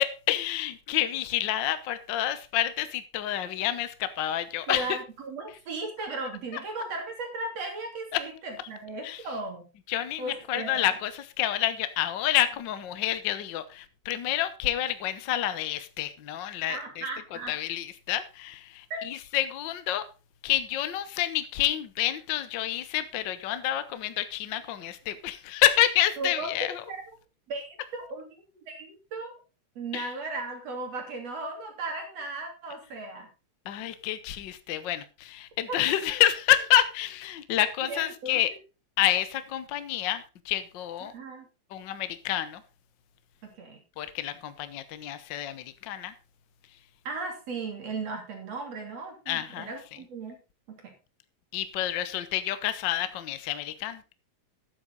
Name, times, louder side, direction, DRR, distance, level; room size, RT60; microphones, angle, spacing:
voice 1, 0.0-5.0 6.5-6.6 8.1-8.2 9.0-9.2 9.9-17.0 17.5-20.1 20.4-26.8 29.9-30.1 33.6-38.5 39.0-41.1 41.7-42.6 44.0-46.1 49.3-49.7 51.5-54.0, left 12 dB, 65° left, 1.1 m, -28 dB
voice 2, 4.7-9.7 10.2-10.9 16.7-17.6 18.9-19.0 26.2-26.5 26.9-27.0 27.5-27.7 27.9-28.3 28.7-29.3 29.8-33.3 35.7-35.8 37.9-38.4 41.0-41.5 43.4-43.8 47.1-50.4 50.7-50.9, right 3 dB, 60° right, 4.2 m, -36 dB
12.5 x 9.6 x 4.0 m
omnidirectional pair, 3.3 m